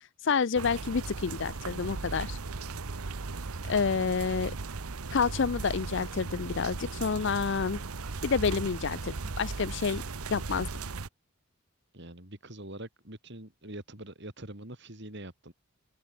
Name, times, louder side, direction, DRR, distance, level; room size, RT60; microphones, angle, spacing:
voice 1, 0.2-2.4 3.7-4.5 5.1-7.8 8.2-10.0 10.3-10.7, left 5 dB, 55° left, 0.5 m, -29 dB
sound 1, 0.6-11.1, right 3 dB, 90° right, 1.0 m, -37 dB
voice 2, 11.9-15.5, right 1 dB, 50° right, 4.8 m, -44 dB
open air
head